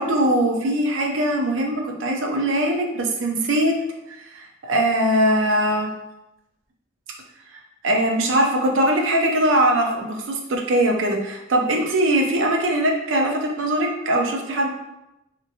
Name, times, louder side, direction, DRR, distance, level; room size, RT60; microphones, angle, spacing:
voice 1, 0.0-3.8 4.3-5.9 7.8-14.7, right 1 dB, 80° right, 1 dB, 0.5 m, -21 dB
2.8 x 2.7 x 2.5 m, 0.92 s
head